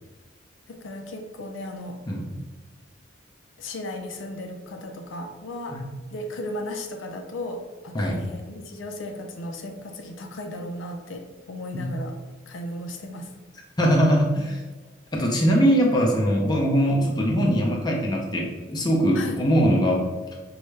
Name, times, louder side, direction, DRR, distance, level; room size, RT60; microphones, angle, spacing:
voice 1, 0.7-2.0 3.6-5.8 6.1-12.2 12.5-13.3 19.1-19.4, left 1 dB, 80° left, 4 dB, 0.5 m, -35 dB
voice 2, 7.9-8.3 11.7-11.9 13.8-14.6 15.1-20.1, equal, 20° left, -2 dB, 0.6 m, -21 dB
5.3 x 2.3 x 3.2 m, 1.3 s
head